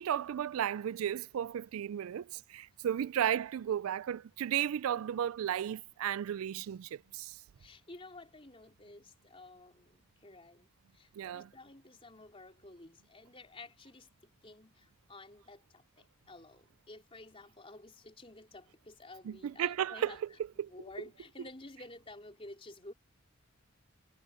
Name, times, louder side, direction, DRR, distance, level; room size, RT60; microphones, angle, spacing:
voice 1, 0.0-7.3 11.2-11.5 19.3-20.2 20.6-20.7, right 10 dB, 90° right, 0.3 m, -34 dB
voice 2, 7.6-22.9, left 2 dB, 25° left, 4.0 m, -52 dB
head